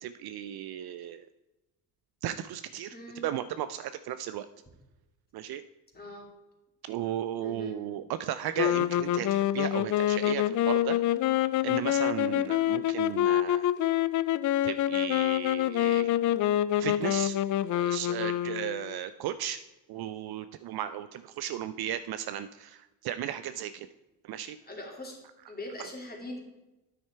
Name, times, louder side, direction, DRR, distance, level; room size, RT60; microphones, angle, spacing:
voice 1, 0.0-1.3 2.2-2.9 3.2-4.5 5.3-5.6 6.8-11.0 11.6-13.7 14.6-16.1 16.8-17.4 17.7-19.6 19.9-23.9 24.2-24.6, right 11 dB, 50° right, 12 dB, 0.5 m, -35 dB
voice 2, 2.9-3.2 5.9-6.3 7.4-7.8 12.1-12.4 24.6-25.2 25.5-26.4, left 1 dB, 20° left, 0 dB, 2.7 m, -42 dB
sound 1, 8.6-19.0, left 12 dB, 40° left, 0.4 m, -26 dB
9.3 x 6.3 x 4.5 m, 1.0 s
hypercardioid pair, 60°, 48 cm